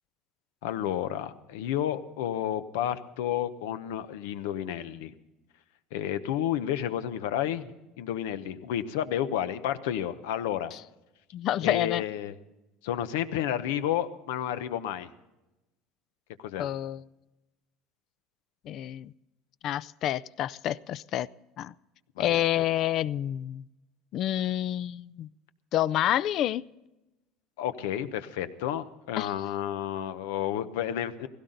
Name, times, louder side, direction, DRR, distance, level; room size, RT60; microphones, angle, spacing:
voice 1, 0.6-5.1 5.9-10.7 11.6-12.4 12.8-15.1 16.4-16.7 22.2-22.4 27.6-31.3, left 10 dB, 90° left, 12 dB, 0.9 m, -31 dB
voice 2, 11.3-12.0 16.6-17.0 18.7-19.1 19.6-21.3 21.6-21.7 22.2-23.6 24.1-25.3 25.7-26.7 29.2-29.3, left 12 dB, 50° left, 17 dB, 0.4 m, -28 dB
17.0 x 16.0 x 3.9 m, 0.98 s
supercardioid pair, 130°, 0 cm